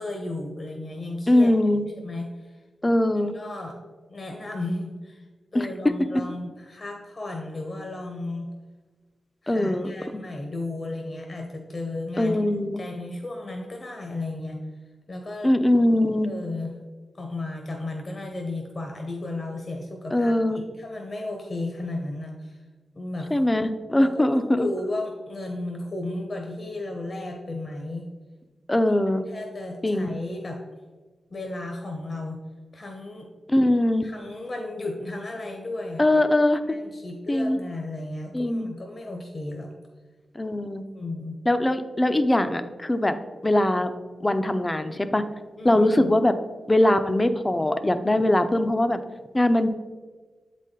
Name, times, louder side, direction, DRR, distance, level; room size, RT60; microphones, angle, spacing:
voice 1, 0.0-2.6 3.3-3.8 4.1-5.3 5.5-8.5 9.4-12.4 12.8-14.6 15.1-15.5 16.2-16.7 17.1-20.3 20.8-22.6 22.9-23.3 24.0-28.0 28.8-29.0 29.3-30.6 31.3-32.4 32.7-33.3 34.0-36.1 36.6-39.7 40.9-41.4 45.6-46.1, left 2 dB, 50° left, 2 dB, 0.9 m, -34 dB
voice 2, 1.3-1.8 2.8-3.3 5.5-5.9 9.5-9.9 12.2-12.8 15.4-16.3 20.1-20.6 23.3-24.7 28.7-29.3 29.8-30.1 33.5-34.1 36.0-36.6 37.3-37.6 38.3-38.7 40.3-40.8 41.5-43.2 43.4-43.9 44.2-45.2 45.6-46.3 46.7-49.0 49.3-49.7, left 1 dB, 25° left, 9 dB, 0.5 m, -21 dB
7.4 x 4.2 x 3.7 m, 1.4 s
cardioid pair, 50°, 0 cm